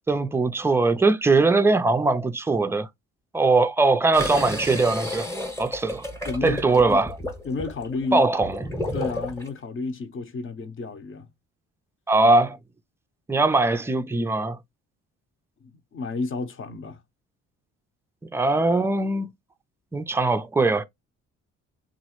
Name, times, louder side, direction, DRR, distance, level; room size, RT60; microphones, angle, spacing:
voice 1, 0.1-2.9 3.3-5.3 5.6-6.0 6.4-7.1 8.1-8.6 12.1-12.6 13.3-14.6 18.3-19.3 19.9-20.8, right 3 dB, 10° right, 0.4 m, -21 dB
sound 1, 4.1-9.5, left 1 dB, 10° left, 0.8 m, -32 dB
voice 2, 6.2-7.0 7.4-8.3 8.9-11.3 15.6-17.0, left 3 dB, 40° left, 0.7 m, -31 dB
3.0 x 2.4 x 3.0 m
cardioid pair, 90°, 30 cm